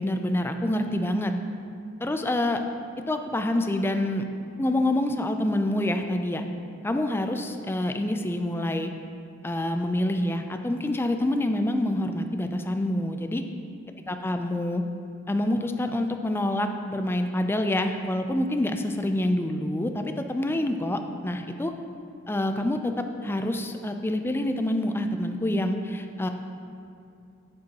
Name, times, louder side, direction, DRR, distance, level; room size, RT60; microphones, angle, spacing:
voice 1, 0.0-1.3 2.0-2.6 3.1-4.2 4.6-6.4 6.8-8.9 9.4-13.4 14.1-14.8 15.3-21.7 22.3-22.9 23.2-26.3, left 1 dB, 10° left, 6 dB, 0.3 m, -27 dB
8.5 x 7.4 x 2.9 m, 2.5 s
head